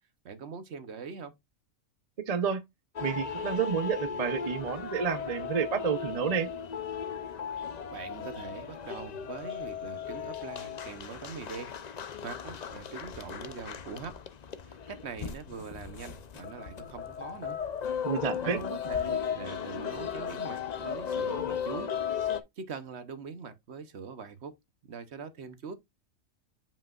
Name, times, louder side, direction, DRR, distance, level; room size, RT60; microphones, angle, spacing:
voice 1, 0.2-1.3 7.9-11.7 12.2-14.2 14.6-17.6 18.4-21.9 22.3-24.5 24.9-25.7, right 5 dB, 55° right, 1.0 m, -42 dB
voice 2, 2.3-2.6 3.0-6.5 18.0-18.6, right 6 dB, 40° right, 0.6 m, -30 dB
sound 1, 2.9-22.4, left 7 dB, 60° left, 0.4 m, -36 dB
7.5 x 5.5 x 2.4 m
omnidirectional pair, 1.4 m